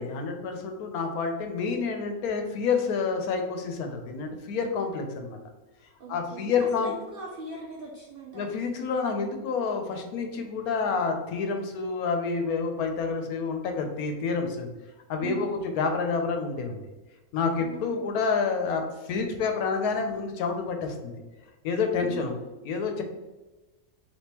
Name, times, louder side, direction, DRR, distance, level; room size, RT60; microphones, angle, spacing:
voice 1, 0.0-5.4 6.1-6.9 8.3-14.7 15.1-16.8 17.3-18.8 19.1-21.1 21.6-22.3 22.6-23.0, left 5 dB, 80° left, 4 dB, 1.1 m, -28 dB
voice 2, 6.0-8.5 15.2-15.6 17.6-18.1 22.0-22.3, right 4 dB, 75° right, -2 dB, 0.5 m, -40 dB
3.5 x 2.8 x 2.8 m, 1.1 s
omnidirectional pair, 1.6 m